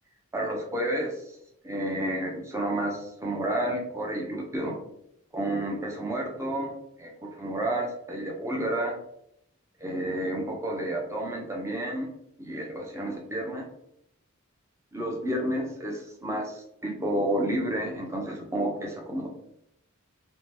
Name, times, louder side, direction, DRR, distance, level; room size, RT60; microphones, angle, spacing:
voice 1, 0.3-1.2 1.6-4.8 5.3-6.7 7.0-9.0 9.8-12.1 12.4-13.7 14.9-19.3, right 1 dB, 15° right, 0 dB, 0.5 m, -30 dB
2.7 x 2.1 x 3.1 m, 0.76 s
head